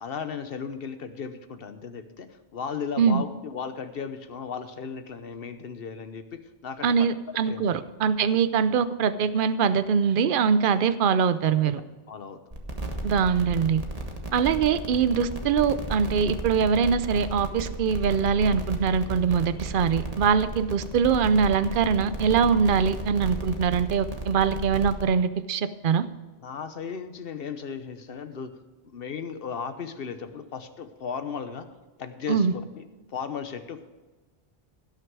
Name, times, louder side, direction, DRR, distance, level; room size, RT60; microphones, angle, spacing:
voice 1, 0.0-7.1 7.4-7.7 11.6-11.8 12.1-12.4 26.4-28.5 28.9-31.7 32.0-32.8 33.1-33.8, left 6 dB, 65° left, 10 dB, 1.1 m, -36 dB
voice 2, 6.8-11.8 13.0-13.8 14.3-26.0 32.3-32.5, right 6 dB, 60° right, 13 dB, 0.8 m, -23 dB
sound 1, 12.5-25.0, right 1 dB, 35° right, 1.5 m, -34 dB
17.5 x 6.5 x 4.7 m, 1.3 s
omnidirectional pair, 1.1 m